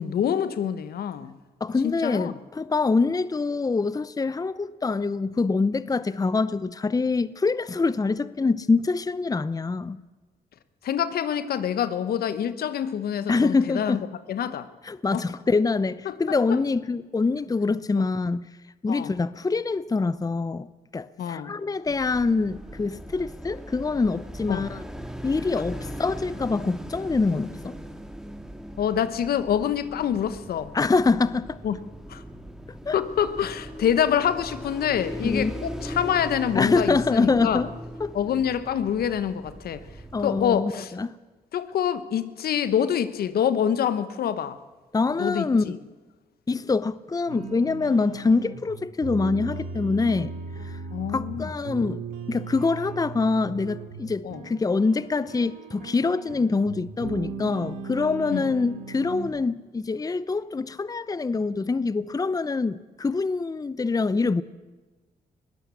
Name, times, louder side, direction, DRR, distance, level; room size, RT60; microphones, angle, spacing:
voice 1, 0.0-1.4 1.8-2.3 10.8-14.0 14.3-14.7 15.1-15.2 16.0-16.1 16.5-16.6 17.9-18.0 18.9-19.1 21.2-21.5 24.5-24.7 28.8-30.7 31.6-31.8 32.1-32.2 32.9-37.6 38.1-39.8 40.2-40.9 41.5-44.6 45.2-45.8 50.9-51.5 54.2-54.5 58.3-58.5, left 9 dB, 75° left, 1.1 m, -26 dB
voice 2, 1.6-10.0 13.3-14.0 14.9-18.5 18.8-20.7 20.9-24.8 25.2-27.8 30.7-31.6 32.9-33.0 35.2-35.5 36.6-37.7 38.0-38.1 40.1-41.2 44.9-45.8 46.5-50.3 50.6-50.8 51.1-52.0 52.3-64.4, left 4 dB, 20° left, 0.7 m, -25 dB
sound 1, 21.9-40.6, equal, 5° right, 2.2 m, -39 dB
sound 2, 47.3-59.3, right 5 dB, 85° right, 3.1 m, -37 dB
21.5 x 16.5 x 8.4 m
supercardioid pair, 60°, 16 cm